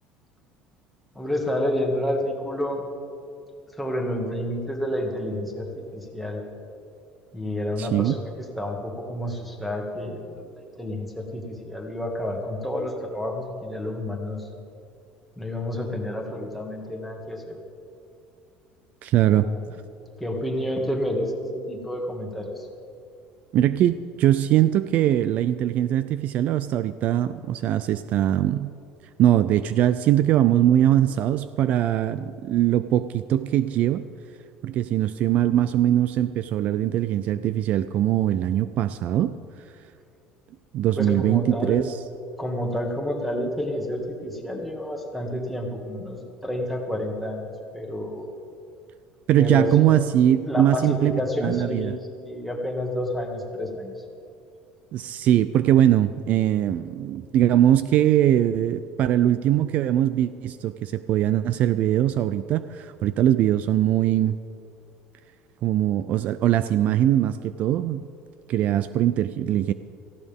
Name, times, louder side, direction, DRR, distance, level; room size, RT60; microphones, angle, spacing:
voice 1, 1.2-2.8 3.8-6.4 7.3-14.5 15.4-17.6 19.3-19.7 20.2-21.2 21.7-22.7 41.0-41.8 42.4-48.3 49.4-49.9 50.4-53.9, left 1 dB, ahead, -1 dB, 1.9 m, -29 dB
voice 2, 7.8-8.1 19.0-19.5 23.5-28.7 29.2-34.1 34.6-39.3 40.7-41.9 49.3-51.9 54.9-64.4 65.6-68.0 68.5-69.7, right 12 dB, 50° right, 13 dB, 0.4 m, -21 dB
17.5 x 15.0 x 3.6 m, 2.4 s
cardioid pair, 145°, 3 cm